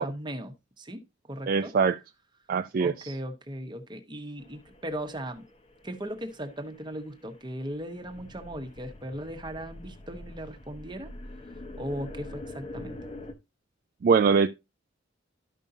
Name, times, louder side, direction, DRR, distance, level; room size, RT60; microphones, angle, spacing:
voice 1, 0.0-1.7 2.8-5.5 5.8-11.1 11.7-13.0, right 1 dB, 25° right, 1.1 m, -38 dB
voice 2, 1.5-2.0 2.5-2.9 14.0-14.5, right 5 dB, 50° right, 0.3 m, -22 dB
sound 1, 4.4-13.3, left 1 dB, 30° left, 1.0 m, -45 dB
12.5 x 5.4 x 2.7 m
head